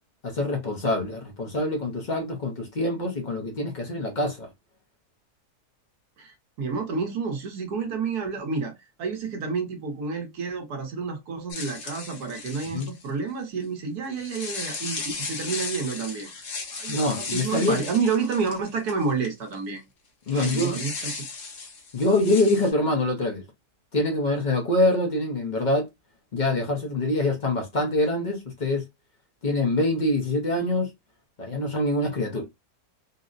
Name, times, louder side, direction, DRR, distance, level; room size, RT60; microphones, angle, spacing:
voice 1, 0.2-4.5 12.7-12.9 16.9-17.8 20.3-20.8 21.9-23.4 23.9-25.9 26.3-28.8 29.4-30.9 31.4-32.4, left 2 dB, 45° left, 0.6 m, -25 dB
voice 2, 6.2-8.7 9.0-16.3 16.7-19.8 20.3-21.2, right 5 dB, 75° right, 1.4 m, -29 dB
sound 1, 11.5-13.1 14.1-19.3 19.5-19.6 20.3-22.7, left 4 dB, 80° left, 1.6 m, -36 dB
4.0 x 2.0 x 2.5 m
omnidirectional pair, 1.7 m